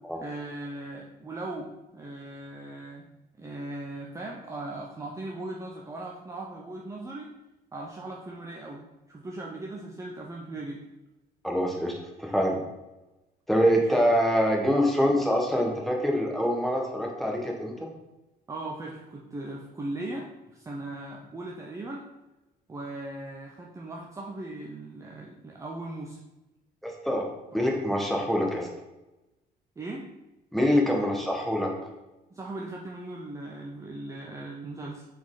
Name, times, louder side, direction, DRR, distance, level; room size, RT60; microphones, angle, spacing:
voice 1, 0.2-3.1 3.4-7.3 7.7-8.8 9.1-10.8 13.7-13.8 18.5-22.0 22.7-26.2 29.8-30.1 32.3-35.1, right 2 dB, 20° right, -1 dB, 0.7 m, -38 dB
voice 2, 11.4-12.6 13.5-17.9 26.8-27.3 27.5-28.7 30.5-31.7, equal, ahead, -1 dB, 1.3 m, -25 dB
5.9 x 4.3 x 3.9 m, 1.0 s
cardioid pair, 110°, 17 cm